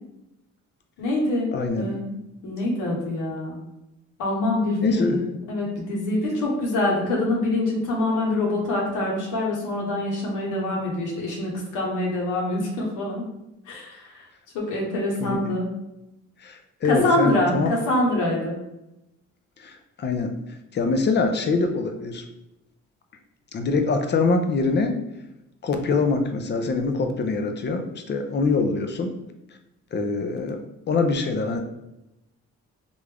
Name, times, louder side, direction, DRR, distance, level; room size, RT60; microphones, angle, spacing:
voice 1, 1.0-3.6 4.2-13.3 13.7-14.1 14.5-15.7 16.9-18.5, left 2 dB, 85° left, -2 dB, 1.1 m, -25 dB
voice 2, 1.5-2.0 4.8-5.2 15.2-15.4 16.4-17.8 19.6-20.3 20.7-22.2 23.5-25.0 25.6-29.1 29.9-31.6, left 3 dB, 35° left, 6 dB, 0.5 m, -24 dB
3.4 x 2.6 x 3.3 m, 0.90 s
cardioid pair, 90°, 30 cm